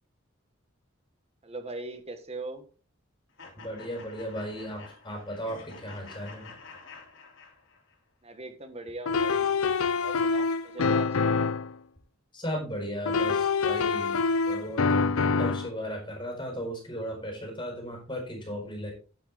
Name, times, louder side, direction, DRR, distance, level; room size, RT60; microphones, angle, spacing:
voice 1, 1.4-2.6 8.2-9.5 10.0-11.3, right 2 dB, 30° right, 9 dB, 1.5 m, -40 dB
sound 1, 3.4-8.0, left 4 dB, 60° left, 2.9 m, -49 dB
voice 2, 3.6-6.5 12.3-14.2 14.5-18.9, equal, 25° left, 1 dB, 4.6 m, -36 dB
sound 2, 9.1-11.7 13.1-15.7, left 4 dB, 85° left, 0.6 m, -26 dB
10.5 x 9.3 x 3.5 m, 0.36 s
head